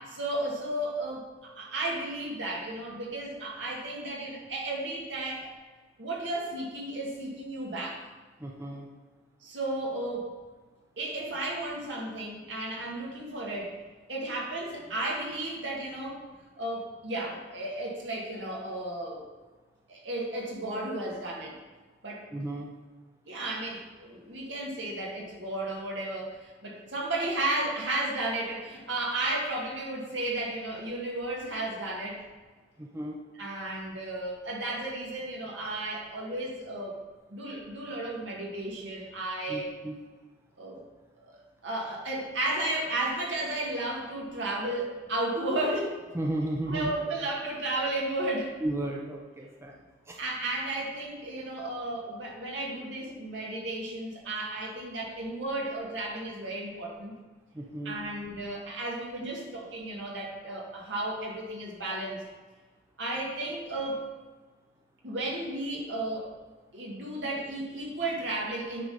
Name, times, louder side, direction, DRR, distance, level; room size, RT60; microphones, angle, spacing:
voice 1, 0.1-5.5 6.0-8.0 9.4-10.3 11.0-13.7 14.1-16.2 16.6-19.3 19.9-21.5 22.0-22.3 23.3-32.2 33.4-37.0 37.3-39.7 40.6-40.8 41.2-46.0 46.7-48.5 50.2-57.1 57.8-62.2 63.0-64.0 65.0-66.3 66.7-68.8, right 2 dB, 70° right, -3 dB, 2.1 m, -33 dB
voice 2, 8.4-8.9 22.3-22.7 32.8-33.2 39.5-39.9 46.1-46.9 48.6-49.8 50.1-50.2 57.5-58.0 59.2-59.3, right 1 dB, 15° right, -1 dB, 0.8 m, -34 dB
9.7 x 3.9 x 6.7 m, 1.3 s
head